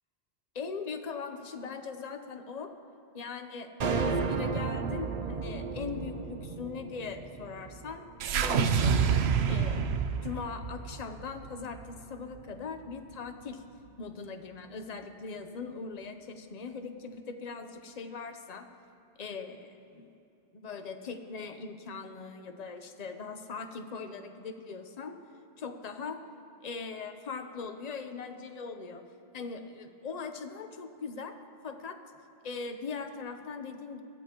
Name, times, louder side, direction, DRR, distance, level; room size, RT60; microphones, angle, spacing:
voice 1, 0.5-2.7 3.1-8.1 8.3-9.0 9.5-10.0 10.2-13.6 14.0-18.7 19.2-20.1 20.5-25.2 25.6-26.2 26.6-29.0 29.3-31.4 31.6-32.0 32.4-34.0, left 5 dB, 40° left, 6 dB, 0.9 m, -40 dB
sound 1, 3.8-8.2, right 4 dB, 45° right, 0.6 m, -33 dB
sound 2, 8.2-12.5, right 6 dB, 80° right, 0.9 m, -28 dB
22.5 x 15.0 x 3.1 m, 2.8 s
omnidirectional pair, 1.1 m